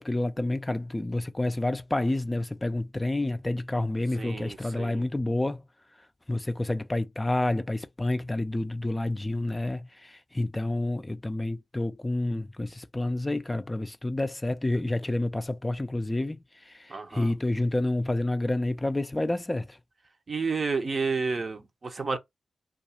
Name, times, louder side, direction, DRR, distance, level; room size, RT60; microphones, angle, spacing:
voice 1, 0.0-5.6 6.3-19.8, left 1 dB, 20° left, 0.3 m, -29 dB
voice 2, 4.2-5.0 16.9-17.3 20.3-22.2, right 4 dB, 50° right, 0.6 m, -30 dB
2.3 x 2.3 x 2.8 m
cardioid pair, 45°, 0 cm